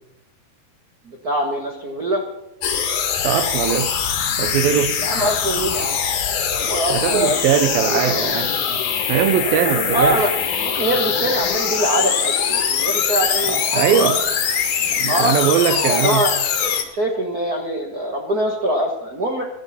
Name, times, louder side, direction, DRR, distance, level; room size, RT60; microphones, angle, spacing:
voice 1, 1.1-2.2 5.0-6.0 6.5-8.2 9.5-10.3 10.6-13.8 15.1-15.5 15.8-16.3 16.9-19.4, right 1 dB, 60° right, 0.9 m, -23 dB
sound 1, 2.6-16.8, left 7 dB, 60° left, 2.9 m, -22 dB
voice 2, 3.2-4.0 4.4-5.0 6.9-8.6 9.1-10.3 13.4-14.3 15.0-16.2, right 9 dB, 80° right, 2.6 m, -20 dB
22.0 x 12.0 x 4.2 m
omnidirectional pair, 4.3 m